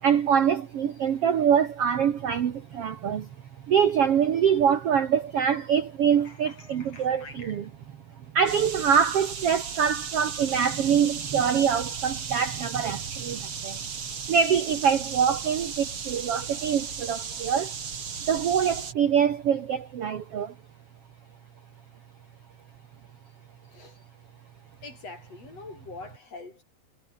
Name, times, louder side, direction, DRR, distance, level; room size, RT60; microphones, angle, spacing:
voice 1, 0.0-3.3 3.6-7.7 8.3-13.8 14.2-17.8 18.3-20.5, right 7 dB, 60° right, 1.5 m, -24 dB
voice 2, 6.1-7.6 23.7-24.0 24.8-26.6, left 3 dB, 40° left, 7.1 m, -44 dB
sound 1, 8.5-18.9, right 6 dB, 35° right, 2.9 m, -36 dB
omnidirectional pair, 4.7 m